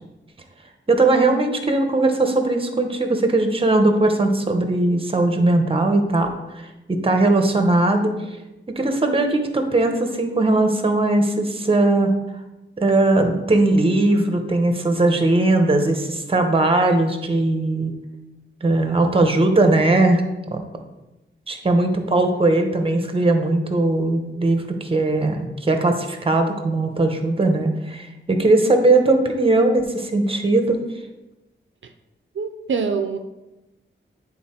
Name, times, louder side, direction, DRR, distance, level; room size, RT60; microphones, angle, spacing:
voice 1, 0.9-8.1 8.8-12.1 12.8-17.9 18.6-20.2 20.5-20.6 21.5-30.8, right 2 dB, 30° right, 5 dB, 0.9 m, -19 dB
voice 2, 32.3-33.2, right 5 dB, 75° right, 7 dB, 0.5 m, -25 dB
9.5 x 4.0 x 4.4 m, 1.0 s
wide cardioid pair, 120°, 20 cm